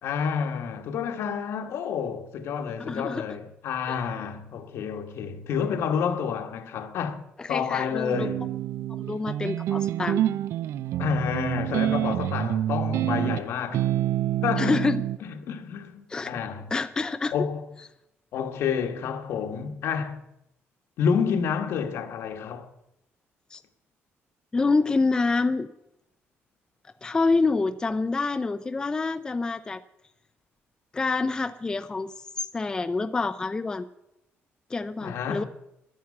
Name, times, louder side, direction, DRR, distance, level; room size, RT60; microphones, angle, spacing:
voice 1, 0.0-8.5 11.0-13.9 14.4-14.8 15.2-16.7 17.3-17.7 18.3-20.2 21.0-22.7 35.0-35.4, left 7 dB, 70° left, 1.4 m, -29 dB
voice 2, 2.8-3.2 7.4-8.3 8.9-10.2 14.6-15.0 16.1-16.3 16.7-17.3 23.5-23.6 24.5-25.7 27.0-29.8 30.9-33.9 34.7-35.4, left 3 dB, 15° left, 0.4 m, -27 dB
sound 1, 8.1-15.2, right 12 dB, 75° right, 0.4 m, -27 dB
11.0 x 10.5 x 8.5 m
cardioid pair, 160°, 5 cm